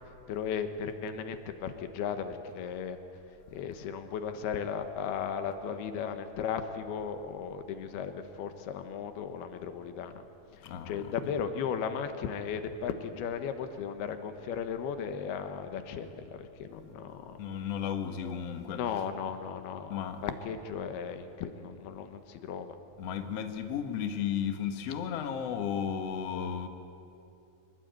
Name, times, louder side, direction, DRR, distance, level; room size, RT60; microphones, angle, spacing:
voice 1, 0.3-3.0 3.5-10.2 10.5-17.4 18.7-22.8, left 7 dB, 90° left, 8 dB, 3.3 m, -36 dB
voice 2, 10.6-11.0 16.7-16.9 17.4-18.8 19.9-20.2 23.0-26.7, left 8 dB, 55° left, 7 dB, 2.0 m, -34 dB
25.0 x 21.5 x 9.4 m, 2.7 s
omnidirectional pair, 4.4 m